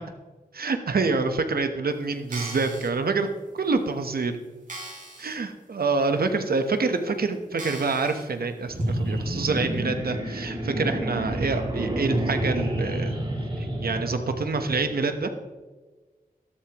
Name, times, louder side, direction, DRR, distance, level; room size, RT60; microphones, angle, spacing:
voice 1, 0.5-3.3 3.5-4.4 5.2-13.2 13.6-15.3, right 4 dB, 90° right, 7 dB, 1.1 m, -26 dB
sound 1, 2.2-2.9 3.6-3.7 4.1-4.2 4.7-5.4 5.8-5.9 6.7-6.8 7.6-8.3 8.8-8.9, right 2 dB, 60° right, 4.0 m, -39 dB
sound 2, 8.7-14.9, right 1 dB, 35° right, 2.6 m, -29 dB
14.0 x 12.5 x 3.1 m, 1.3 s
wide cardioid pair, 100°, 15 cm